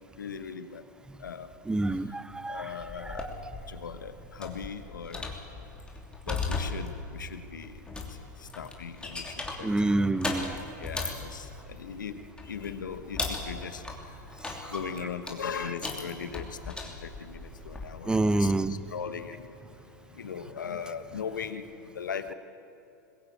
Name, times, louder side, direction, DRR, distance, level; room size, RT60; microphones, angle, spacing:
voice 1, 0.2-0.8 1.2-1.5 2.5-3.3 3.7-5.3 6.3-7.7 8.4-10.0 10.8-14.2 14.7-19.5 20.1-22.3, left 6 dB, 85° left, 10 dB, 1.3 m, -39 dB
voice 2, 1.6-3.3 9.6-10.7 14.4-14.5 18.1-18.8, right 2 dB, 10° right, 15 dB, 0.7 m, -28 dB
sound 1, 2.9-17.9, left 3 dB, 10° left, 3.0 m, -38 dB
21.5 x 16.0 x 8.6 m, 2.8 s
hypercardioid pair, 105°, 10 cm